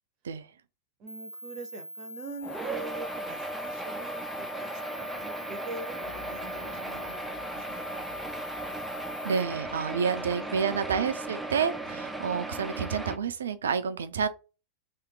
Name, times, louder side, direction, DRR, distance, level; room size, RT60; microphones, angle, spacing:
voice 1, 1.0-4.5 5.0-7.3 7.6-7.9 9.8-10.9 11.8-12.1, right 3 dB, 40° right, 0.8 m, -44 dB
sound 1, 1.1-9.4, left 1 dB, 90° left, 0.3 m, -43 dB
sound 2, 2.4-13.2, right 2 dB, 5° right, 0.6 m, -37 dB
sound 3, 6.0-13.3, left 3 dB, 45° left, 1.8 m, -52 dB
voice 2, 9.2-14.3, right 6 dB, 65° right, 0.5 m, -29 dB
3.5 x 3.1 x 4.7 m
figure-of-eight pair, 90°, 0 cm